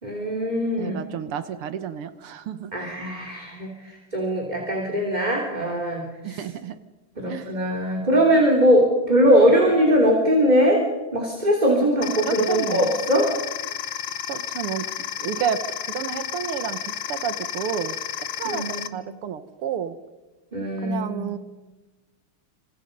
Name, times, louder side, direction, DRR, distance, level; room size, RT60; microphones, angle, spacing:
voice 1, 0.0-1.0 2.7-6.4 7.2-10.8 11.1-13.3 18.4-19.0 20.5-21.3, equal, 20° right, -1 dB, 3.5 m, -21 dB
voice 2, 0.8-2.9 6.2-6.8 7.2-7.6 12.3-12.9 14.3-18.0 18.4-20.0 20.8-21.4, right 8 dB, 85° right, 10 dB, 2.1 m, -31 dB
sound 1, 12.0-18.9, left 10 dB, 65° left, 1.6 m, -32 dB
28.0 x 27.0 x 5.4 m, 1.2 s
omnidirectional pair, 2.4 m